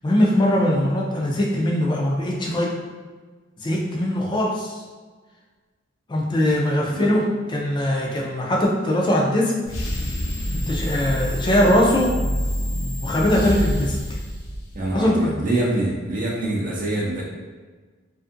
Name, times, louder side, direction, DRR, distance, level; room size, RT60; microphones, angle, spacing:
voice 1, 0.0-2.7 3.6-4.8 6.1-9.5 10.5-12.1 13.0-14.0 14.9-15.3, left 1 dB, 20° left, -2 dB, 0.4 m, -21 dB
sound 1, 9.6-15.1, equal, 80° left, 0.5 m, -27 dB
voice 2, 14.7-17.2, right 2 dB, 40° right, -4 dB, 0.5 m, -25 dB
2.5 x 2.5 x 2.5 m, 1.4 s
head